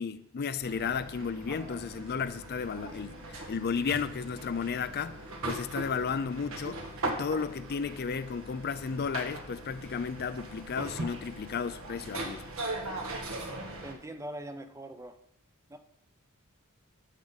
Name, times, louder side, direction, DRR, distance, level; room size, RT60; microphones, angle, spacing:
voice 1, 0.0-5.2 5.4-12.4, left 6 dB, 45° left, 0.4 m, -33 dB
sound 1, 0.6-13.9, right 2 dB, 65° right, 1.8 m, -40 dB
voice 2, 13.8-15.1 15.7-15.8, right 1 dB, 15° right, 0.7 m, -42 dB
13.5 x 7.4 x 4.1 m
head